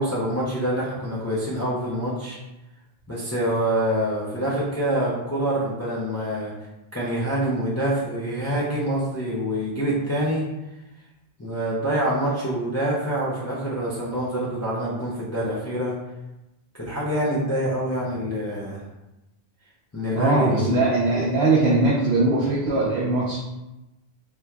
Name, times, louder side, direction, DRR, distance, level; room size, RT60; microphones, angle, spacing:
voice 1, 0.0-2.4 3.1-6.5 6.9-10.5 11.4-16.0 16.8-18.8 19.9-20.8 21.1-21.3, right 1 dB, 20° left, -8 dB, 0.5 m, -26 dB
voice 2, 20.1-23.4, right 2 dB, 75° right, -6 dB, 0.9 m, -21 dB
3.4 x 2.9 x 2.3 m, 0.98 s
omnidirectional pair, 1.1 m